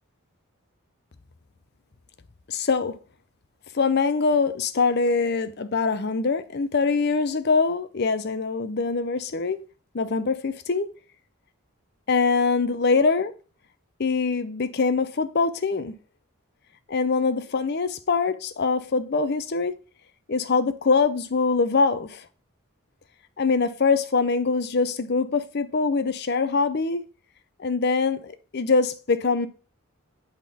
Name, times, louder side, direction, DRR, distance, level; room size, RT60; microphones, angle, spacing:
voice 1, 2.5-3.0 3.7-9.6 9.9-10.9 12.1-13.3 14.0-15.9 16.9-19.8 20.3-22.2 23.4-27.1 27.6-29.5, left 4 dB, 50° left, 0.5 m, -23 dB
8.4 x 3.7 x 4.1 m
head